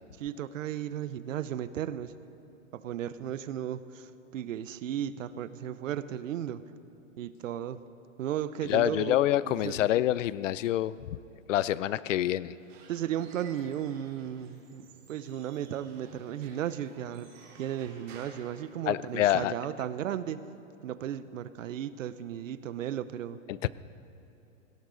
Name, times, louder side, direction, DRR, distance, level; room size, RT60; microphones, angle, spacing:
voice 1, 0.2-2.1 2.7-6.6 7.2-7.8 8.2-9.2 9.4-9.9 12.9-17.3 17.6-20.4 20.8-23.4, right 10 dB, 75° right, 14 dB, 0.8 m, -35 dB
voice 2, 8.6-10.9 11.5-12.6 18.9-19.5 23.5-23.7, left 13 dB, 70° left, 18 dB, 0.6 m, -26 dB
Squeak / Wood, 12.4-19.3, right 4 dB, 45° right, 4.0 m, -55 dB
17.5 x 17.5 x 3.9 m, 2.9 s
hypercardioid pair, 170°, 39 cm